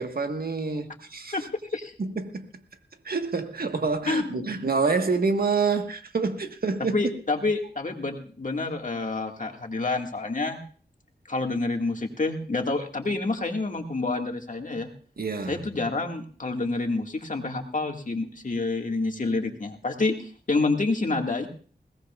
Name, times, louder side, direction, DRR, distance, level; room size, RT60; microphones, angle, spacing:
voice 1, 0.0-1.3 2.0-2.5 3.0-7.0 15.2-15.6, right 4 dB, 60° right, 1.5 m, -27 dB
voice 2, 4.1-4.5 6.8-10.6 11.3-14.9 15.5-21.5, left 3 dB, 50° left, 2.0 m, -28 dB
21.0 x 17.5 x 2.5 m
wide cardioid pair, 65°, 17 cm